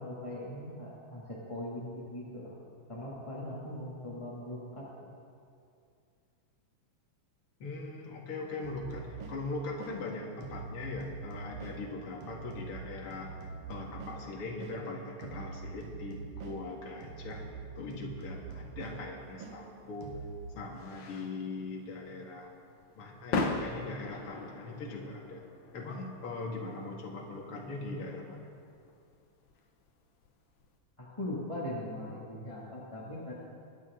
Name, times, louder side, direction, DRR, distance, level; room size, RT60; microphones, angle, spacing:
voice 1, 0.0-2.5 2.9-5.1 31.0-33.3, left 1 dB, 10° left, -7 dB, 1.9 m, -40 dB
voice 2, 7.6-13.4 13.7-20.1 20.5-22.5 23.0-25.4 25.7-28.5, left 3 dB, 50° left, -1 dB, 2.5 m, -40 dB
sound 1, 8.6-20.5, right 5 dB, 60° right, 2.0 m, -45 dB
sound 2, 19.4-30.7, left 3 dB, 65° left, 1.1 m, -41 dB
25.0 x 10.5 x 3.8 m, 2.4 s
omnidirectional pair, 3.5 m